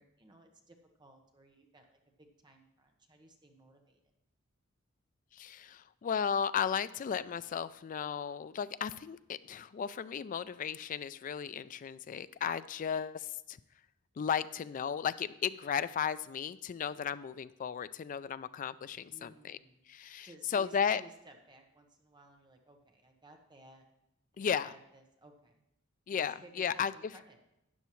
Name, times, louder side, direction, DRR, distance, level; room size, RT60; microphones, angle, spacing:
voice 1, 0.0-4.0 19.1-19.8 20.2-23.8 24.3-25.6 26.1-27.4, right 1 dB, 20° right, 3 dB, 1.1 m, -58 dB
voice 2, 5.3-13.6 14.2-19.6 19.9-21.0 24.4-24.7 26.1-26.9, left 7 dB, 40° left, 15 dB, 0.3 m, -35 dB
12.5 x 9.0 x 3.1 m, 0.83 s
head